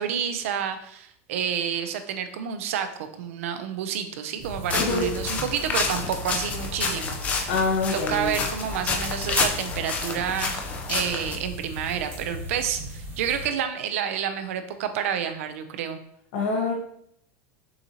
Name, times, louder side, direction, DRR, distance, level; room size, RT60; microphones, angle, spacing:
voice 1, 0.0-7.5 7.9-10.6 10.9-16.0, right 8 dB, 85° right, 9 dB, 0.5 m, -29 dB
sound 1, 4.4-13.5, equal, 30° right, 1.2 m, -37 dB
sound 2, 4.7-11.4, left 4 dB, 20° left, 0.4 m, -29 dB
voice 2, 7.5-8.4 16.3-16.7, left 3 dB, 55° left, 0 dB, 1.2 m, -25 dB
6.4 x 2.7 x 2.9 m, 0.70 s
supercardioid pair, 175°, 7 cm